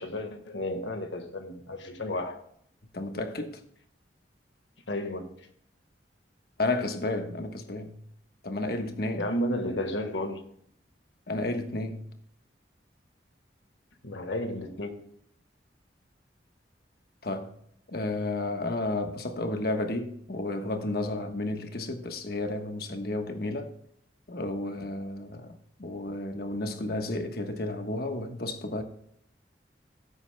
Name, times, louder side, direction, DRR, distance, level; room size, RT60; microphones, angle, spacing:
voice 1, 0.0-2.4 4.9-5.3 9.1-10.4 14.0-15.0, left 1 dB, 90° left, 1.6 m, -32 dB
voice 2, 2.9-3.6 6.6-8.0 8.4-9.3 11.3-12.1 17.2-17.5 17.9-23.7 24.3-28.8, left 2 dB, 60° left, 1.3 m, -32 dB
16.0 x 8.3 x 2.3 m
head